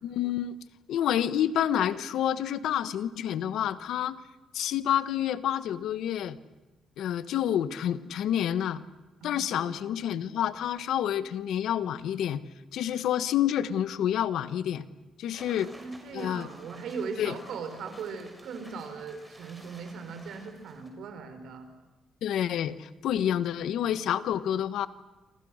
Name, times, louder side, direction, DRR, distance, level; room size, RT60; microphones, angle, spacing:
voice 1, 0.0-0.6 0.9-4.2 4.5-6.4 7.0-8.8 9.2-12.4 12.7-14.9 15.2-15.7 16.1-16.5 17.2-17.3 22.2-24.9, left 10 dB, 80° left, 13 dB, 1.3 m, -28 dB
voice 2, 9.2-9.8 15.5-21.7, right 5 dB, 75° right, 7 dB, 5.2 m, -39 dB
sound 1, 15.3-20.9, right 1 dB, 10° right, 6.7 m, -52 dB
28.5 x 26.5 x 6.5 m, 1.1 s
cardioid pair, 90°, 0 cm